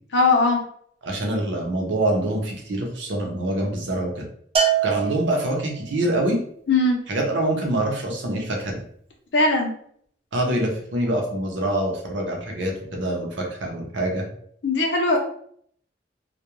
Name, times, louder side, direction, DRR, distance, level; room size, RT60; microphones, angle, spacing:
voice 1, 0.1-0.6 6.7-7.0 9.3-9.7 14.6-15.2, left 2 dB, 70° left, 1 dB, 0.6 m, -19 dB
voice 2, 1.0-4.2 4.8-6.4 7.1-8.8 10.3-14.3, right 1 dB, 80° right, 1 dB, 0.7 m, -25 dB
Bell, 4.6-5.9, right 8 dB, 35° right, 0.4 m, -24 dB
2.3 x 2.2 x 2.9 m, 0.64 s
head